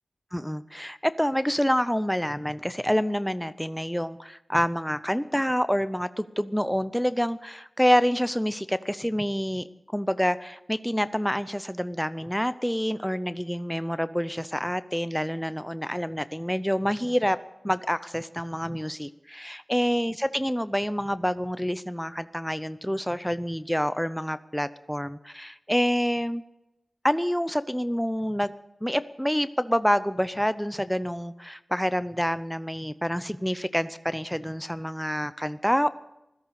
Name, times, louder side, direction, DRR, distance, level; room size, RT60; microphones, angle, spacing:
voice 1, 0.3-9.7 9.9-17.4 17.6-26.4 27.0-28.5 28.8-35.9, equal, 5° left, 13 dB, 0.7 m, -27 dB
16.0 x 13.5 x 6.6 m, 0.90 s
cardioid pair, 55°, 0 cm